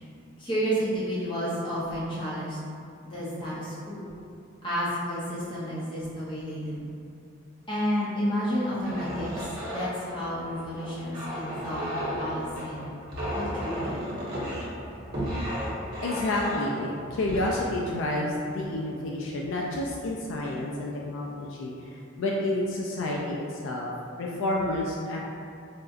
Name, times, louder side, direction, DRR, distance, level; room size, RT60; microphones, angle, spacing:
voice 1, 0.4-2.6 3.0-4.1 4.6-6.8 7.7-11.9 12.2-12.8 13.3-14.1, equal, 25° left, -9 dB, 0.8 m, -31 dB
sound 1, 8.8-19.0 19.7-20.0 20.4-20.9, equal, 45° right, 0.8 m, -34 dB
voice 2, 16.0-23.9 24.2-25.3, left 1 dB, 70° left, -2 dB, 0.3 m, -30 dB
4.1 x 2.4 x 2.4 m, 2.4 s
head